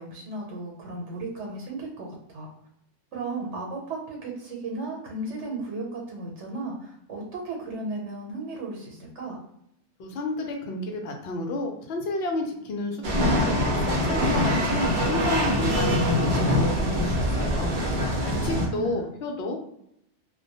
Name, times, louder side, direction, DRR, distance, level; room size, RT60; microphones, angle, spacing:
voice 1, 0.0-2.5 3.1-9.4 18.2-19.1, right 2 dB, 80° right, -1 dB, 1.0 m, -35 dB
voice 2, 10.0-17.7 18.0-19.6, left 2 dB, 65° left, 3 dB, 0.7 m, -31 dB
sound 1, 13.0-18.7, equal, 55° right, 0.7 m, -24 dB
2.2 x 2.1 x 2.7 m, 0.75 s
omnidirectional pair, 1.2 m